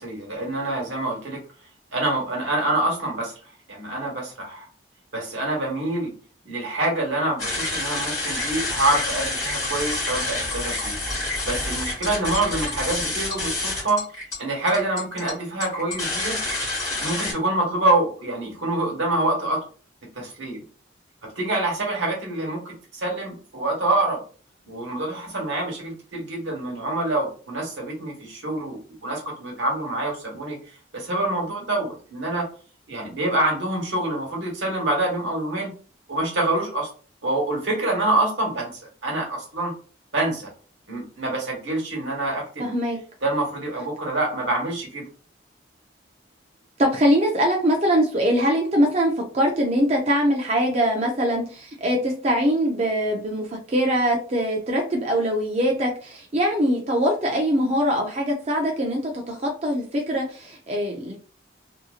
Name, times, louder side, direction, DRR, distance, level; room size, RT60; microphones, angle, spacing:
voice 1, 0.0-1.4 1.9-3.3 3.7-4.7 5.1-6.1 6.4-11.0 11.4-14.0 14.4-16.4 17.0-19.6 20.1-20.6 21.3-24.2 24.7-30.6 30.9-32.4 32.9-35.7 36.1-36.9 37.2-38.7 39.0-39.7 40.1-40.5 40.9-42.7 43.2-45.0, right 2 dB, 80° right, -1 dB, 1.2 m, -26 dB
sound 1, 7.4-17.3, left 2 dB, 20° left, 1.3 m, -28 dB
voice 2, 42.6-43.0 46.8-61.2, equal, 35° right, 0 dB, 0.4 m, -22 dB
2.8 x 2.6 x 2.4 m, 0.40 s
head